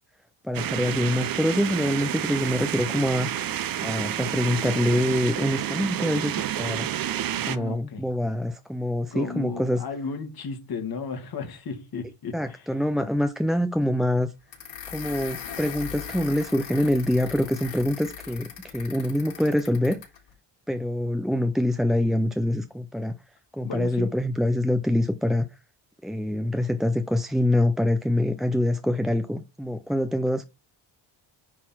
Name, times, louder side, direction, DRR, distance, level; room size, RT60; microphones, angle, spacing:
voice 1, 0.4-3.3 3.8-6.9 7.5-9.8 12.3-14.3 14.9-20.0 20.7-23.2 23.6-25.5 26.0-30.4, left 1 dB, ahead, 0.3 m, -25 dB
sound 1, 0.5-7.6, right 11 dB, 45° right, 0.7 m, -29 dB
voice 2, 7.5-8.0 9.1-12.7 23.6-24.1, left 5 dB, 50° left, 2.0 m, -34 dB
sound 2, 14.5-20.2, left 8 dB, 70° left, 3.8 m, -39 dB
9.7 x 3.8 x 4.4 m
cardioid pair, 145°, 47 cm